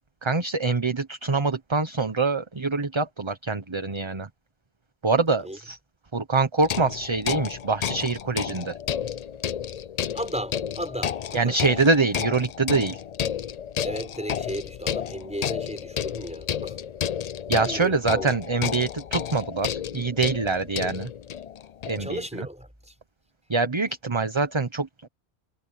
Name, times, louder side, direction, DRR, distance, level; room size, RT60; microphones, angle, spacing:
voice 1, 0.2-4.3 5.0-5.8 6.1-8.7 11.3-13.0 17.5-21.1 21.8-22.5 23.5-25.1, right 3 dB, 25° right, 1.1 m, -25 dB
sound 1, 6.6-22.2, left 9 dB, 50° left, 0.5 m, -32 dB
voice 2, 10.1-11.6 13.8-16.8 17.5-18.3 22.0-22.9, equal, 5° right, 6.6 m, -35 dB
omnidirectional pair, 1.1 m